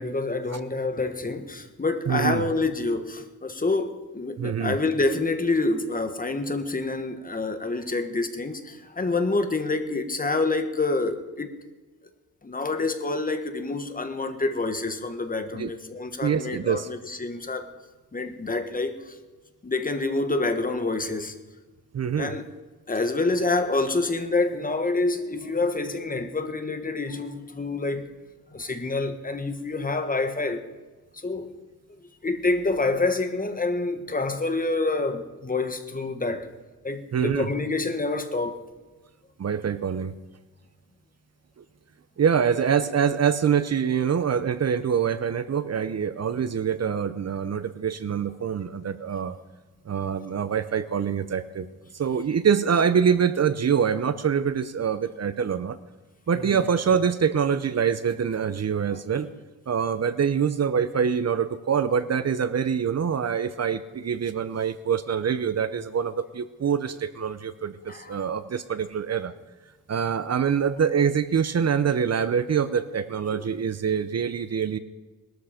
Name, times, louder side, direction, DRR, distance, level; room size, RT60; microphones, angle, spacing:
voice 1, 0.0-11.5 12.4-17.7 18.1-19.1 19.6-21.3 22.1-22.5 22.9-28.1 28.5-30.6 31.1-31.5 32.2-36.5 36.8-38.6 56.3-56.7 58.9-59.0 67.9-68.2 73.2-73.5, left 3 dB, 25° left, 1.4 m, -27 dB
voice 2, 2.1-2.4 4.4-4.8 15.6-15.7 16.2-16.9 21.9-22.3 37.1-37.5 39.4-40.1 42.2-49.4 49.9-51.7 51.9-55.8 56.3-59.3 59.7-69.3 69.9-74.8, right 7 dB, 45° right, 0.7 m, -25 dB
20.5 x 13.0 x 5.1 m
wide cardioid pair, 130°, 36 cm